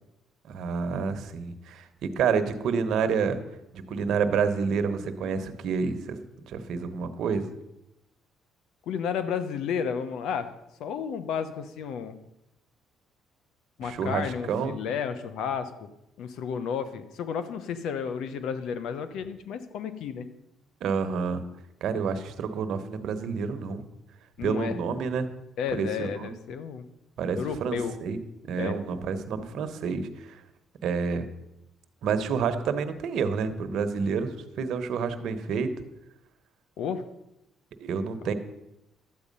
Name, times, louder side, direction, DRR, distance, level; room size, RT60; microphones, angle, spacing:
voice 1, 0.5-3.4 3.7-6.2 6.4-7.4 13.8-14.8 20.8-21.4 21.8-23.8 24.4-25.3 25.7-26.4 27.2-28.2 28.4-30.4 30.8-31.2 32.0-35.7 37.8-38.3, right 5 dB, 70° right, 9 dB, 1.1 m, -29 dB
voice 2, 8.9-10.5 10.8-12.2 13.8-15.9 16.2-20.3 24.4-24.8 25.6-26.8 27.3-27.9 28.6-28.8 36.8-37.1 38.2-38.3, left 7 dB, 75° left, 11 dB, 0.9 m, -32 dB
12.0 x 8.5 x 5.4 m, 0.87 s
cardioid pair, 90°, 0 cm